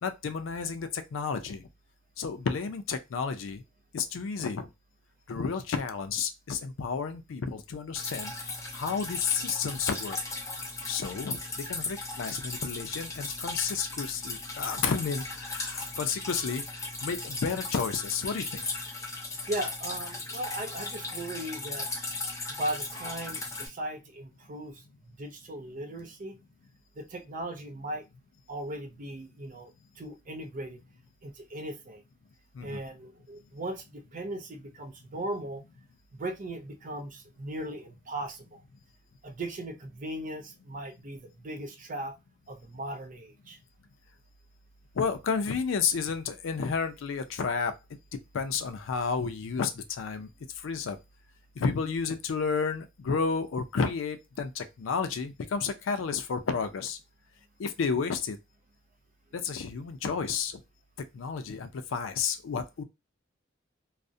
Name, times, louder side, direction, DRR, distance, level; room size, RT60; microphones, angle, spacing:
voice 1, 0.0-1.6 2.2-3.6 3.9-4.7 5.3-8.3 8.7-10.2 10.9-11.4 11.7-16.6 17.0-18.8 32.5-32.8 45.0-47.7 48.3-49.7 50.0-50.3 50.6-51.0 51.6-57.0 57.6-58.4 59.3-60.6 61.1-62.8, left 5 dB, 80° left, 0.4 m, -31 dB
Drip, 8.0-23.7, left 3 dB, 15° left, 0.5 m, -37 dB
voice 2, 19.5-21.9 22.6-26.4 27.0-28.0 28.5-30.8 31.2-32.0 32.6-35.6 36.1-38.6 39.2-42.1 42.5-43.6, right 1 dB, 45° right, 0.4 m, -38 dB
2.4 x 2.0 x 2.5 m
head